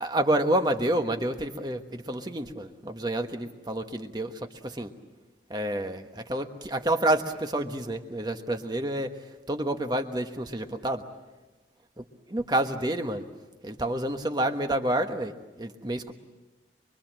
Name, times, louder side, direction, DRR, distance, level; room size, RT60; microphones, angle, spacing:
voice 1, 0.0-4.3 4.6-4.9 5.5-6.0 6.3-9.1 9.5-11.0 12.3-13.2 13.6-15.3 15.6-16.1, right 1 dB, 25° right, 6 dB, 1.3 m, -28 dB
24.5 x 24.0 x 7.5 m, 1.2 s
head